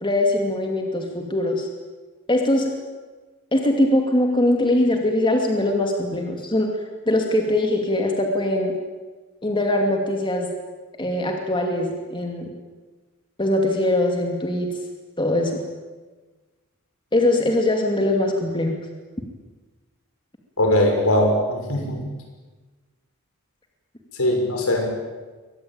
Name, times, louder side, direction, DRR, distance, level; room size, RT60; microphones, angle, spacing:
voice 1, 0.0-1.7 2.3-2.7 3.5-6.7 7.1-8.7 9.4-10.5 11.0-12.5 13.4-14.7 15.2-15.6 17.1-18.8, left 1 dB, 20° left, 2 dB, 2.6 m, -21 dB
voice 2, 20.6-22.0 24.2-24.9, left 1 dB, 75° left, 3 dB, 6.0 m, -20 dB
23.0 x 19.5 x 8.9 m, 1.3 s
head